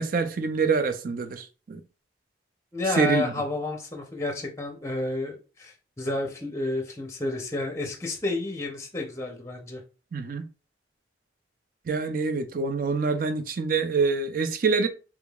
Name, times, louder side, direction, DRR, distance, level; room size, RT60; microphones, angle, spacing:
voice 1, 0.0-1.8 3.0-3.3 10.1-10.4 11.9-14.9, right 4 dB, 50° right, 0.4 m, -26 dB
voice 2, 2.7-9.8, left 2 dB, 15° left, 0.6 m, -31 dB
3.5 x 3.4 x 2.3 m
head